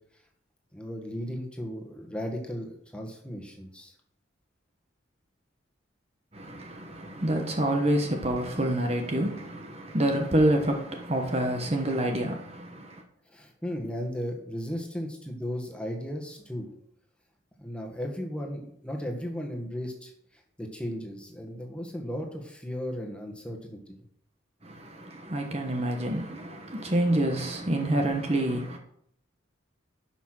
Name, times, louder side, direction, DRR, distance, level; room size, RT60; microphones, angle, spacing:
voice 1, 0.7-3.9 13.3-16.7 17.6-24.0, equal, 5° left, 1.7 m, -36 dB
voice 2, 6.3-13.0 24.6-28.8, right 1 dB, 30° right, 1.1 m, -27 dB
11.0 x 5.9 x 6.2 m
head